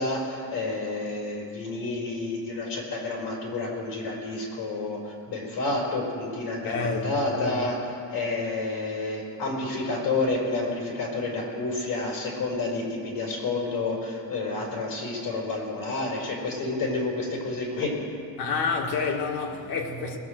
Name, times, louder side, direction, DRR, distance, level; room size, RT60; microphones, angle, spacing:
voice 1, 0.0-7.7 8.1-17.9, left 2 dB, 70° left, 4.6 m, -29 dB
voice 2, 6.6-7.7 18.4-20.2, left 4 dB, 90° left, 1.8 m, -29 dB
20.5 x 7.8 x 6.5 m
cardioid pair, 170°, 36 cm